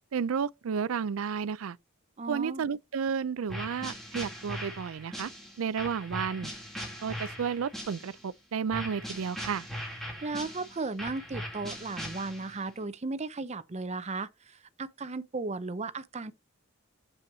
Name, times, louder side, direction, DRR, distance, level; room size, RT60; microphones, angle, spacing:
voice 1, 0.1-1.8 2.3-5.3 5.6-6.5 7.0-9.7, right 6 dB, 80° right, 0.4 m, -32 dB
voice 2, 2.2-2.6 10.2-16.3, right 3 dB, 35° right, 0.6 m, -35 dB
sound 1, 3.5-8.3 8.7-12.7, equal, ahead, 2.4 m, -40 dB
7.6 x 7.5 x 2.7 m
head